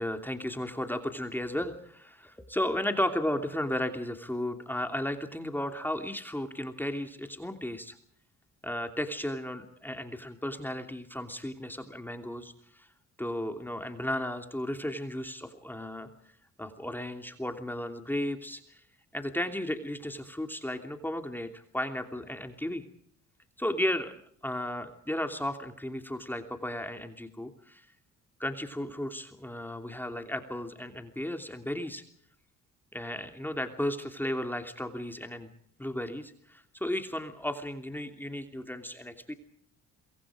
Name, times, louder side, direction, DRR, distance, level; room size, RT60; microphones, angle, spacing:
voice 1, 0.0-8.0 8.6-12.9 13.2-16.1 16.6-18.8 19.1-22.8 23.6-24.1 24.4-27.9 28.4-32.0 32.9-35.5 35.8-39.3, left 1 dB, 5° left, 5 dB, 2.9 m, -34 dB
27.0 x 24.0 x 5.1 m, 0.63 s
cardioid pair, 90°, 30 cm